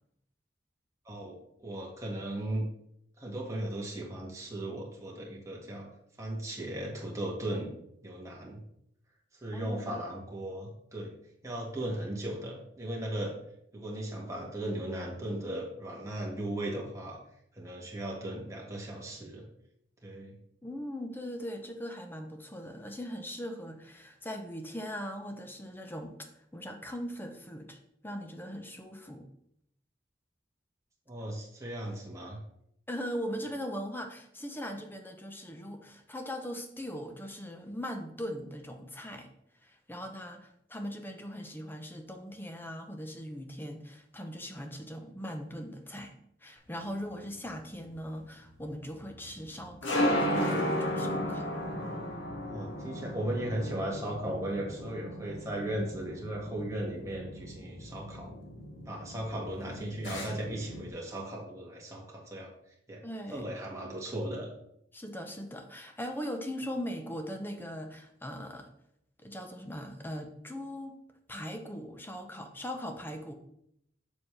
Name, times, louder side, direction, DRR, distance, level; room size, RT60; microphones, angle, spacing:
voice 1, 1.1-2.6 3.2-5.9 6.2-7.7 8.0-8.6 9.4-11.1 11.4-13.4 13.7-17.2 17.5-19.5 20.0-20.3 31.1-32.4 52.4-58.3 58.9-62.5 62.9-63.0 63.3-64.5, right 1 dB, 15° right, -3 dB, 1.8 m, -37 dB
voice 2, 9.5-10.0 20.6-26.2 26.5-29.3 32.9-39.3 39.6-46.1 46.4-51.5 63.0-63.5 64.9-68.7 69.2-71.0 71.3-73.3, equal, 10° left, 5 dB, 0.8 m, -40 dB
hi sting, 46.8-60.9, equal, 90° left, 1.6 m, -35 dB
7.2 x 6.8 x 3.3 m, 0.74 s
head